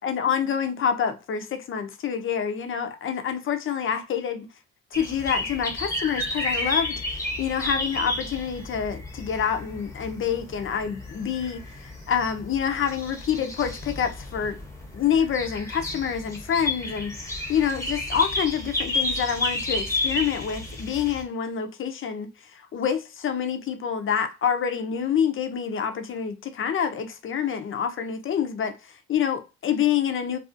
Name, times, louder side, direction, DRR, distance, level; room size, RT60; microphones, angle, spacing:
voice 1, 0.0-4.5 4.9-14.6 14.9-30.4, left 8 dB, 45° left, 0.5 m, -27 dB
sound 1, 4.9-21.2, left 2 dB, 10° left, 0.7 m, -32 dB
2.4 x 2.3 x 2.4 m
cardioid pair, 90°, 30 cm